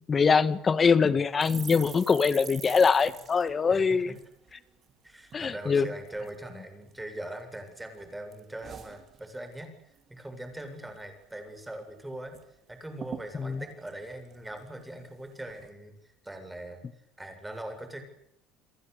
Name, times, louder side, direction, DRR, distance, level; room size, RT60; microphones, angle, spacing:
voice 1, 0.0-4.1 5.3-5.9 13.4-13.6, left 5 dB, 25° left, 14 dB, 1.9 m, -23 dB
sound 1, 1.4-4.9 5.3-5.5 5.7-6.4 6.9-7.7 8.0-9.7 10.0-10.2 10.4-11.0 11.4-11.5 11.7-12.4 12.7-12.8 13.0-14.9 15.4-15.7, right 7 dB, 35° right, 4.2 m, -46 dB
voice 2, 3.7-4.2 5.0-12.4 12.7-16.8 17.2-18.0, right 1 dB, 5° right, 7 dB, 7.7 m, -41 dB
30.0 x 22.5 x 8.5 m, 0.77 s
cardioid pair, 135°, 0 cm